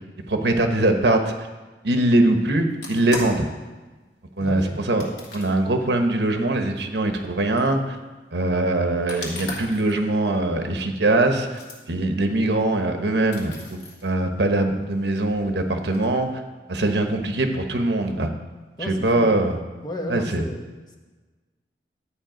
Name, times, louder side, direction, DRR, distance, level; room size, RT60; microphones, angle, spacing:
voice 1, 0.3-1.3 1.8-3.5 4.4-5.1 5.3-8.0 8.3-11.6 11.9-16.3 16.7-18.3 18.8-19.6 20.1-20.4, right 2 dB, 70° right, 5 dB, 1.1 m, -22 dB
sound 1, 2.7-3.5 5.0-5.6 6.6-6.7 7.6-7.7 9.1-10.0 10.8-10.9 11.3-11.8 12.2-12.3 12.8-12.9 13.3-14.1 14.7-16.3, left 2 dB, 70° left, 2.6 m, -37 dB
voice 2, 4.4-4.8 18.8-19.3 19.8-21.0, left 1 dB, 25° left, 2 dB, 1.3 m, -33 dB
12.0 x 8.6 x 5.1 m, 1.3 s
head